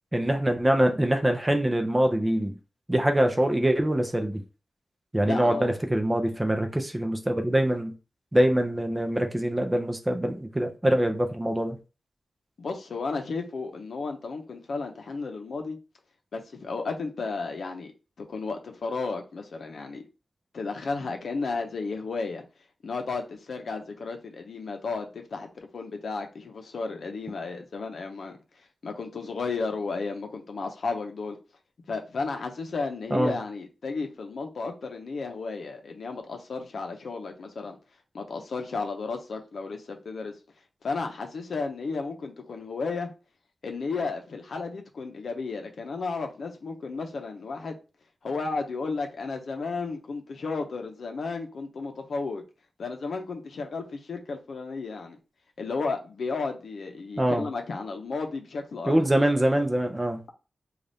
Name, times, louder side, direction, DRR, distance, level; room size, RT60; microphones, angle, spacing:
voice 1, 0.1-2.6 2.9-4.4 5.1-7.9 8.3-11.8 33.1-33.4 57.2-57.5 58.9-60.2, right 1 dB, 15° right, 0.5 m, -24 dB
voice 2, 5.3-5.7 12.6-15.8 16.3-17.9 18.2-20.0 20.5-22.5 22.8-28.4 28.8-31.4 31.9-37.8 38.1-40.3 40.8-43.1 43.6-47.8 48.2-52.4 52.8-55.2 55.6-59.0, left 4 dB, 70° left, 0.7 m, -33 dB
3.9 x 2.4 x 3.4 m
wide cardioid pair, 160°, 0 cm